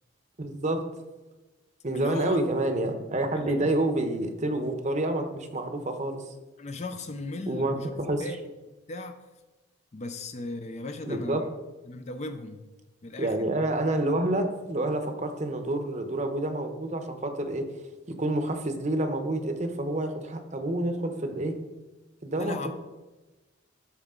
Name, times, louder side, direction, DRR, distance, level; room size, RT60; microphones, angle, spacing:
voice 1, 0.4-0.8 1.8-6.2 7.5-8.2 11.0-11.4 13.2-17.6 18.1-21.5 22.2-22.7, right 1 dB, 35° right, 6 dB, 0.8 m, -28 dB
voice 2, 1.9-2.4 3.3-3.7 6.6-7.9 8.2-8.5 8.9-9.2 9.9-11.5 11.9-12.6 13.0-13.3 22.4-22.7, left 2 dB, 35° left, 8 dB, 0.5 m, -36 dB
13.0 x 4.8 x 3.7 m, 1.1 s
head